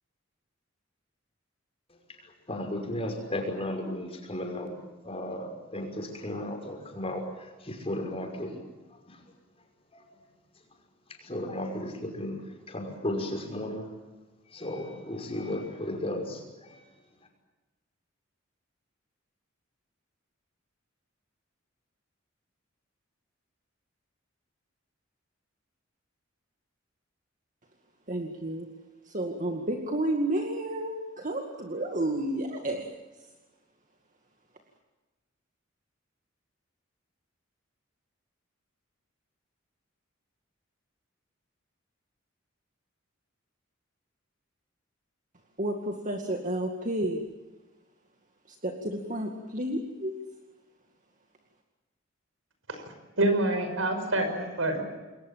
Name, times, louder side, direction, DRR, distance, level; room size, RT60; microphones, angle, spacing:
voice 1, 2.1-4.8 5.0-9.2 9.9-10.0 11.1-13.9 14.5-16.8, left 1 dB, 30° left, 2 dB, 5.7 m, -35 dB
voice 2, 28.1-28.7 29.1-32.9 45.6-47.2 48.5-50.2, right 1 dB, 40° right, 2 dB, 2.2 m, -31 dB
voice 3, 53.2-54.8, right 2 dB, 85° right, 8 dB, 5.7 m, -26 dB
28.5 x 21.5 x 7.6 m, 1.2 s
head